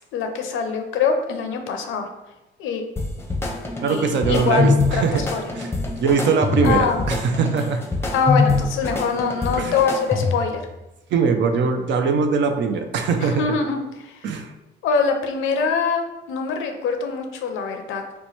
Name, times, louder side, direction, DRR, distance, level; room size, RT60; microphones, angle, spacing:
voice 1, 0.0-2.1 2.6-2.8 3.9-5.4 6.6-7.0 8.1-10.6 13.2-14.3 14.8-18.0, left 5 dB, 85° left, 5 dB, 0.5 m, -24 dB
sound 1, 3.0-10.6, left 3 dB, 10° left, 0.6 m, -24 dB
voice 2, 3.8-5.2 5.6-5.7 6.0-7.8 9.6-9.8 11.1-13.5 14.2-14.5, right 5 dB, 65° right, 6 dB, 0.5 m, -21 dB
2.9 x 2.2 x 4.1 m, 0.99 s
cardioid pair, 90°, 20 cm